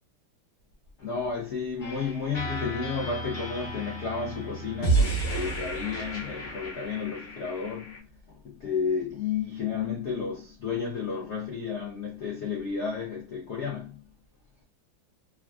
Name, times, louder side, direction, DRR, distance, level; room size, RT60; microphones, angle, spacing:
voice 1, 1.0-14.0, left 6 dB, 80° left, 0.6 m, -32 dB
sound 1, 1.8-8.0, right 3 dB, 40° left, 0.9 m, -31 dB
3.3 x 2.3 x 2.3 m
omnidirectional pair, 2.2 m